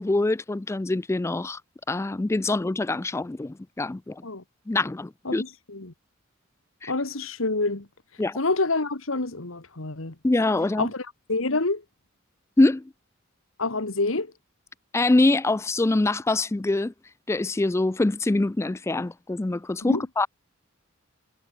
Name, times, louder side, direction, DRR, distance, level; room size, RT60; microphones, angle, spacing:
voice 1, 0.0-1.6 1.9-4.3 4.7-5.4 6.8-6.9 8.2-8.4 10.2-10.9 12.6-12.9 14.9-16.9 17.3-20.3, left 2 dB, 15° left, 0.3 m, -24 dB
voice 2, 5.3-5.9 6.9-7.9 8.4-10.2 10.8-11.8 13.6-14.3 19.8-20.0, left 3 dB, 75° left, 1.9 m, -27 dB
head